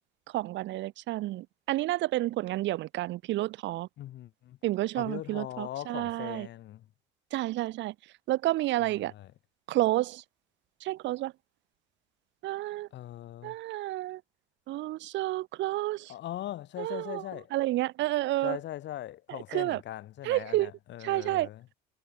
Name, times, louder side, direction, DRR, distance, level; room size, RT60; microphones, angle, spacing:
voice 1, 0.3-3.9 4.6-6.5 7.3-7.9 8.3-9.1 9.7-10.2 10.8-11.3 12.4-12.9 13.4-14.2 14.7-16.1 16.8-17.2 17.5-18.6 19.5-19.8 20.2-20.7 21.0-21.5, right 16 dB, 65° right, 1.0 m, -30 dB
voice 2, 4.0-4.6 4.9-6.9 9.0-9.3 12.9-13.6 16.1-17.5 18.4-21.7, left 13 dB, 65° left, 5.0 m, -40 dB
supercardioid pair, 80°, 20 cm